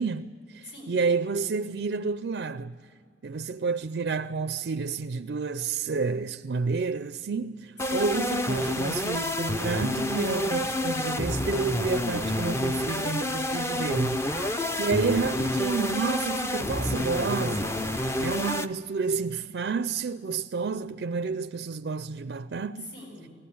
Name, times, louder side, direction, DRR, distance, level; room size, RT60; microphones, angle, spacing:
voice 1, 0.0-2.7 3.2-14.2 14.8-22.9, right 4 dB, 60° right, 0.4 m, -30 dB
voice 2, 0.6-1.0 7.8-8.2 14.3-14.9 22.8-23.3, left 1 dB, 65° left, 7.3 m, -43 dB
sound 1, 7.8-18.7, left 1 dB, 15° left, 0.5 m, -29 dB
19.5 x 15.5 x 8.5 m
head